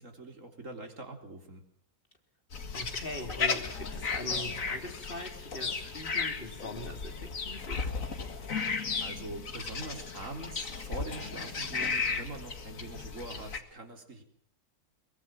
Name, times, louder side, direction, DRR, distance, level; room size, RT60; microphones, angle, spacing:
voice 1, 0.0-1.7 9.0-14.2, right 2 dB, 55° right, 4 dB, 4.1 m, -43 dB
sound 1, 2.5-13.6, left 5 dB, 60° left, 2.3 m, -35 dB
voice 2, 2.7-7.9, left 1 dB, 35° left, 4 dB, 3.6 m, -42 dB
23.0 x 22.5 x 7.6 m, 0.63 s
omnidirectional pair, 1.6 m